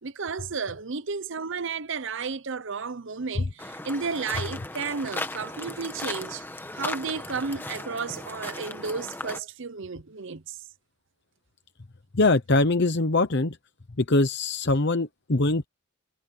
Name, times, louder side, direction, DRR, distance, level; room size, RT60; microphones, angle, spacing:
voice 1, 0.0-6.4 6.7-10.6, right 5 dB, 55° right, 0.8 m, -33 dB
sound 1, 3.6-9.4, left 2 dB, 10° left, 1.3 m, -37 dB
voice 2, 12.1-13.6 14.0-15.7, left 2 dB, 50° left, 0.9 m, -22 dB
head